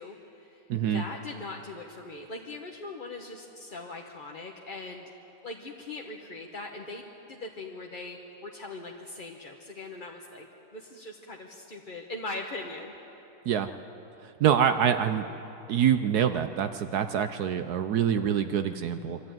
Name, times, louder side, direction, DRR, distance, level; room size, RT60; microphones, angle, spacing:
voice 1, 0.0-0.6 0.9-5.1 5.4-10.5 10.7-12.9, left 2 dB, 35° left, 0 dB, 0.9 m, -40 dB
voice 2, 0.7-1.0 13.5-13.7 14.2-15.3 15.7-19.2, right 8 dB, 70° right, 9 dB, 0.9 m, -25 dB
24.0 x 13.0 x 9.0 m, 3.0 s
omnidirectional pair, 2.3 m